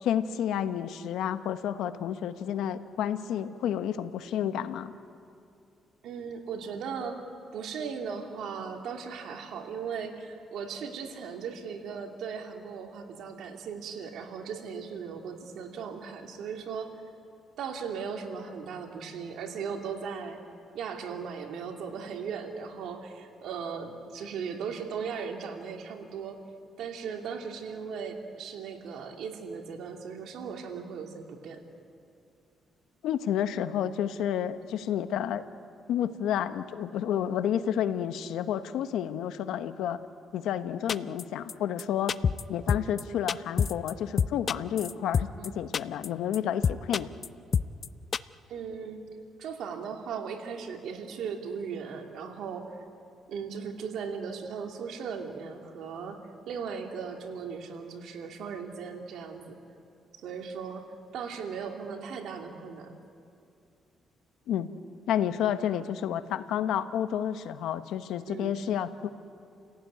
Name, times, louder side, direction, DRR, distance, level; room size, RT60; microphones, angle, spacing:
voice 1, 0.0-4.9 33.0-35.4 35.9-40.0 40.3-42.2 42.5-47.1 64.5-64.7 65.1-68.9, left 10 dB, 85° left, 10 dB, 1.1 m, -30 dB
voice 2, 6.0-7.2 7.5-16.9 17.6-20.4 20.7-26.4 26.8-31.6 45.4-45.6 48.5-49.0 49.4-52.6 53.3-56.2 56.5-59.6 60.2-60.8 61.1-62.9 68.3-68.6, right 6 dB, 75° right, 3 dB, 2.7 m, -37 dB
sound 1, 40.9-41.2 41.5-41.6 41.8-41.9 42.1-42.4 42.7-43.0 43.3-43.9 44.2-45.5 45.7-46.1 46.3-46.4 46.6-47.3 47.5-47.9 48.1-48.2, left 6 dB, 45° left, 0.5 m, -26 dB
29.5 x 16.5 x 9.5 m, 2.5 s
cardioid pair, 90°, 0 cm